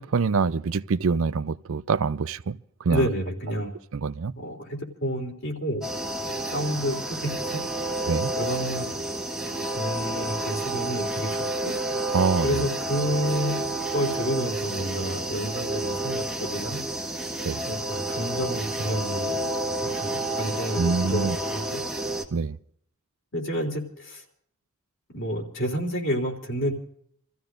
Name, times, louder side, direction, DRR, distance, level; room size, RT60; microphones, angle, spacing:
voice 1, 0.0-2.6 2.8-3.1 3.9-4.3 8.1-8.3 12.1-12.6 17.5-17.6 20.8-21.4 22.3-22.6, right 4 dB, 65° right, 0.5 m, -25 dB
voice 2, 2.9-3.7 4.4-5.8 6.2-7.6 8.3-8.9 9.7-11.7 12.4-16.8 17.6-19.5 19.9-21.8 23.3-24.2 25.1-26.7, equal, 60° left, 3.3 m, -30 dB
sound 1, 5.8-22.2, right 1 dB, ahead, 1.4 m, -30 dB
29.5 x 14.5 x 2.5 m
head